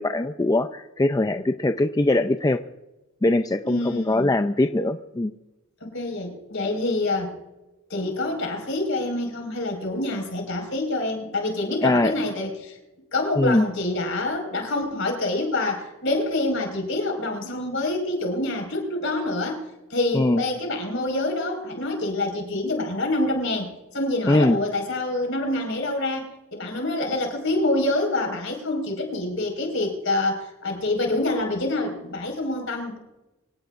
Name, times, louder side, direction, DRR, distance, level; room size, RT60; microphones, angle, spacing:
voice 1, 0.0-2.6 3.2-5.3 11.8-12.1 13.4-13.7 20.1-20.4 24.3-24.6, left 2 dB, 15° left, 8 dB, 0.4 m, -21 dB
voice 2, 3.6-4.3 5.8-7.3 7.9-12.8 13.1-19.6 19.9-33.0, left 2 dB, 65° left, 3 dB, 5.0 m, -26 dB
25.0 x 17.5 x 2.5 m, 1.0 s
head